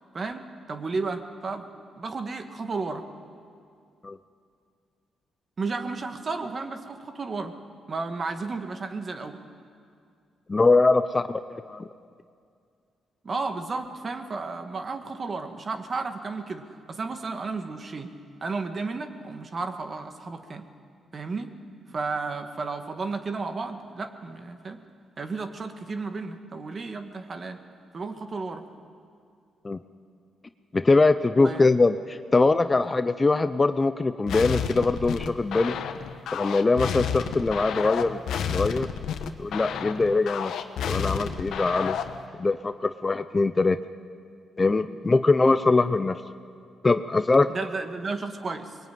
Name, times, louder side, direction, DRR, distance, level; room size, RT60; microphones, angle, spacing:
voice 1, 0.1-1.7 2.0-3.1 5.6-7.5 7.9-9.4 13.2-18.1 18.4-20.6 21.1-21.5 21.9-24.8 25.2-27.6 27.9-28.6 31.4-31.6 47.5-48.8, right 4 dB, 35° right, 7 dB, 1.9 m, -33 dB
voice 2, 10.5-11.9 29.6-29.8 30.7-35.8 36.3-38.9 39.4-40.5 40.9-42.0 42.3-43.8 44.6-46.2 46.8-47.5, left 3 dB, 25° left, 11 dB, 0.7 m, -22 dB
sound 1, 34.3-42.2, left 7 dB, 75° left, 1.3 m, -31 dB
23.0 x 21.5 x 9.4 m, 2.3 s
cardioid pair, 110°, 0 cm